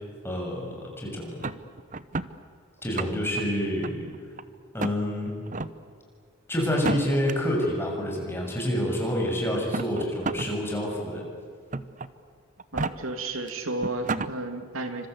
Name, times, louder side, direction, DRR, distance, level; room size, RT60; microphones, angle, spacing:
voice 1, 0.2-1.4 2.8-4.1 4.7-5.4 6.5-11.2, equal, 10° left, -1 dB, 6.9 m, -28 dB
sound 1, 1.4-2.3 2.8-3.4 3.8-4.4 4.8-5.0 5.5-5.7 6.7-7.3 8.4-8.5 9.5-10.5 10.9-11.0 11.7-12.1 12.6-12.9 13.5-13.6 13.8-14.3, right 3 dB, 40° right, 0.9 m, -31 dB
voice 2, 12.7-15.1, right 2 dB, 85° right, 6 dB, 2.5 m, -32 dB
29.0 x 25.5 x 7.9 m, 2.2 s
head